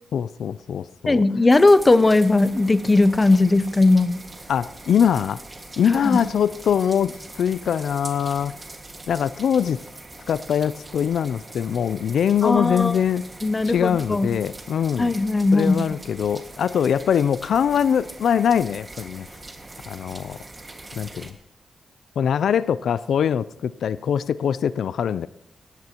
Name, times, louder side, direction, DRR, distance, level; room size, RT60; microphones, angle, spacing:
voice 1, 0.1-1.2 4.5-5.4 5.8-8.5 9.1-9.8 10.3-13.2 13.6-15.2 15.5-19.3 19.9-20.4 21.0-21.4 22.2-25.3, left 8 dB, 85° left, 17 dB, 0.3 m, -22 dB
voice 2, 1.1-4.2 5.9-6.2 12.4-12.9 13.4-14.3 15.0-15.8, left 2 dB, 25° left, 14 dB, 0.7 m, -18 dB
sound 1, 1.5-21.3, right 2 dB, 25° right, 1.8 m, -42 dB
18.0 x 14.0 x 2.9 m, 0.88 s
wide cardioid pair, 110°, 0 cm